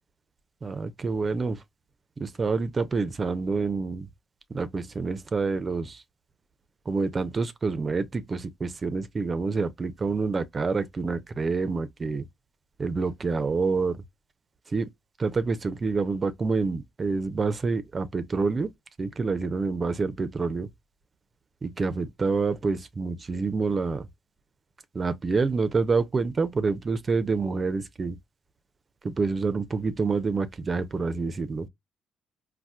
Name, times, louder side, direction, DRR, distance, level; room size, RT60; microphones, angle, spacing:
voice 1, 0.6-1.6 2.2-4.1 4.5-6.0 6.9-12.3 12.8-14.0 14.7-14.9 15.2-18.7 19.0-20.7 21.6-24.1 24.9-28.2 29.0-31.7, right 4 dB, 40° right, 0.5 m, -27 dB
4.1 x 2.2 x 2.2 m
hypercardioid pair, 50°, 0 cm